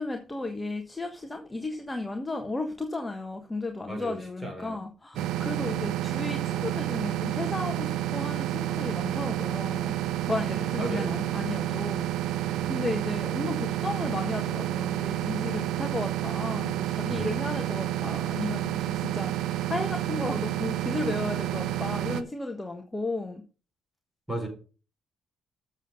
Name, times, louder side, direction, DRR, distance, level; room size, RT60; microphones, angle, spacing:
voice 1, 0.0-9.9 10.2-12.2 12.7-23.4, left 2 dB, 15° left, 1.3 m, -34 dB
voice 2, 3.9-4.8 10.4-11.2 12.5-12.9 17.1-17.4 24.3-24.5, right 1 dB, 10° right, 5.5 m, -36 dB
sound 1, 5.2-22.2, right 13 dB, 85° right, 0.7 m, -30 dB
7.3 x 7.2 x 5.5 m
cardioid pair, 90°, 0 cm